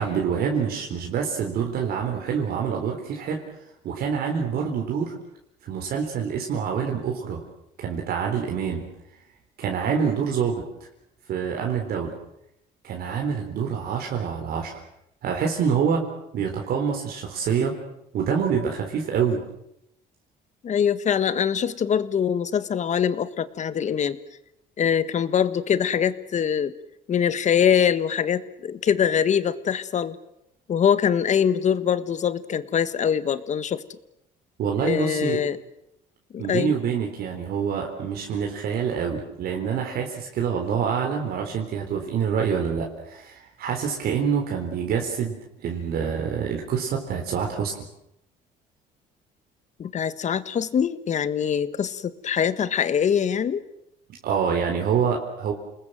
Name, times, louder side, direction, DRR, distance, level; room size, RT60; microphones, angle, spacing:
voice 1, 0.0-3.4 3.8-5.1 5.6-7.4 7.8-8.9 9.6-10.6 11.3-12.1 12.8-14.8 15.2-16.0 16.3-17.7 18.1-19.4 34.6-35.4 36.4-45.4 45.6-47.8 54.2-55.5, right 7 dB, 65° right, 1 dB, 4.0 m, -26 dB
voice 2, 20.6-24.2 24.8-26.7 27.1-30.2 30.7-33.8 34.8-35.6 36.3-36.7 49.8-53.6, left 8 dB, 45° left, 13 dB, 1.6 m, -23 dB
29.0 x 20.5 x 7.6 m, 0.82 s
cardioid pair, 110°, 17 cm